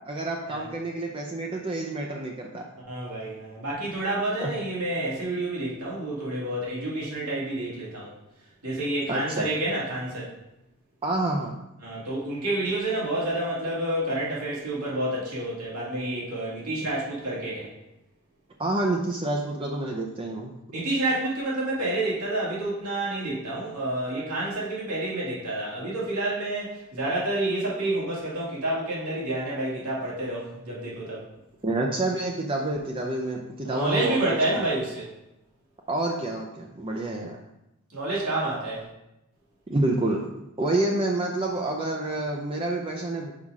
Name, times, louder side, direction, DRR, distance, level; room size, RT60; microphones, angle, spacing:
voice 1, 0.1-2.6 4.4-4.5 9.1-9.5 11.0-11.6 18.6-20.5 31.6-34.6 35.9-37.4 39.7-40.3 40.6-43.3, right 2 dB, 25° right, 0 dB, 0.5 m, -28 dB
voice 2, 2.9-8.1 8.6-10.3 11.8-17.7 20.7-31.2 33.6-35.1 37.9-38.8, right 1 dB, 85° right, -6 dB, 2.6 m, -29 dB
5.7 x 5.0 x 4.7 m, 0.90 s
head